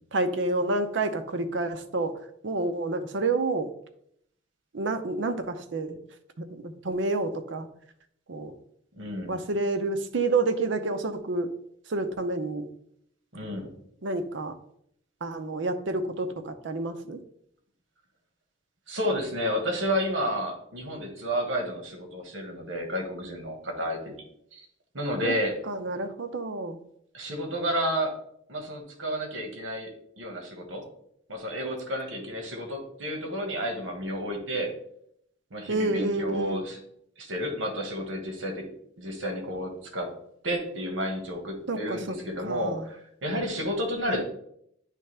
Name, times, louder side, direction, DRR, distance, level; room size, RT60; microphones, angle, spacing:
voice 1, 0.1-2.2 2.4-3.7 4.7-6.0 6.4-7.7 8.3-8.5 9.3-11.5 11.9-12.7 14.0-14.6 15.2-17.2 25.2-25.4 25.7-26.8 35.7-36.6 41.7-42.2 42.5-42.9 44.1-44.2, right 2 dB, 70° right, 10 dB, 0.7 m, -29 dB
voice 2, 9.0-9.4 13.3-13.7 18.9-24.2 24.5-24.7 24.9-25.5 27.1-28.1 28.5-30.8 31.3-34.7 35.5-36.8 37.2-38.7 39.0-40.1 40.4-44.2, equal, 90° right, 2 dB, 1.4 m, -31 dB
9.9 x 3.3 x 3.3 m, 0.71 s
head